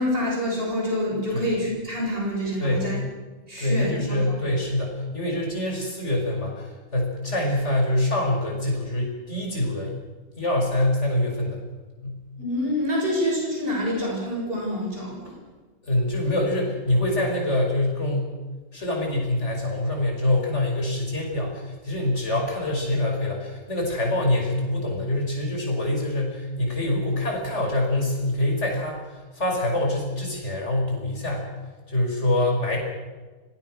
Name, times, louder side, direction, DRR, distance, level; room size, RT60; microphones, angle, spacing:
voice 1, 0.0-3.0 3.5-4.5 12.4-15.3, equal, 25° right, -2 dB, 7.3 m, -27 dB
voice 2, 2.6-2.9 3.6-9.9 10.4-11.6 12.0-12.2 15.8-18.3 18.7-31.5 31.9-32.8, left 1 dB, 35° left, 0 dB, 6.1 m, -25 dB
25.5 x 19.5 x 6.4 m, 1.3 s
omnidirectional pair, 2.2 m